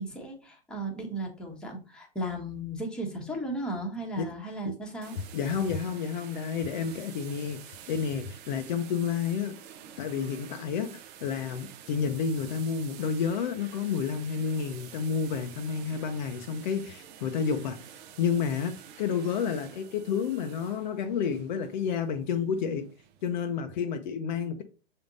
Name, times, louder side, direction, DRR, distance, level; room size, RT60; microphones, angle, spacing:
voice 1, 0.0-5.1, right 1 dB, 5° left, 1.2 m, -35 dB
sound 1, 5.0-23.3, right 9 dB, 25° right, 0.6 m, -49 dB
voice 2, 5.3-9.6 10.0-17.8 18.2-22.9 23.2-24.6, left 6 dB, 45° left, 0.8 m, -30 dB
6.8 x 3.6 x 3.9 m
hypercardioid pair, 145°, 32 cm